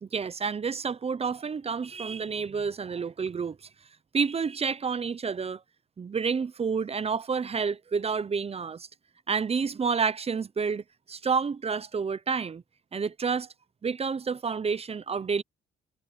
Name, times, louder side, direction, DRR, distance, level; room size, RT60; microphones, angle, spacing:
voice 1, 0.0-3.6 4.1-5.6 6.0-8.9 9.3-12.6 12.9-13.5 13.8-15.4, right 5 dB, 30° right, 0.7 m, -29 dB
cardioid pair, 90°, 20 cm